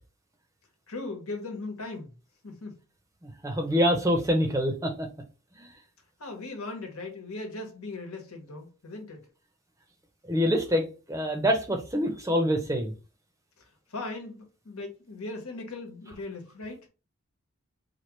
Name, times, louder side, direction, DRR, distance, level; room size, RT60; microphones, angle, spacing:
voice 1, 0.9-2.1 2.4-2.7 6.2-9.3 13.6-16.9, left 2 dB, 85° left, 1.2 m, -38 dB
voice 2, 3.2-5.1 5.6-5.7 10.3-12.9, equal, 15° right, 0.6 m, -26 dB
4.5 x 2.4 x 3.1 m
head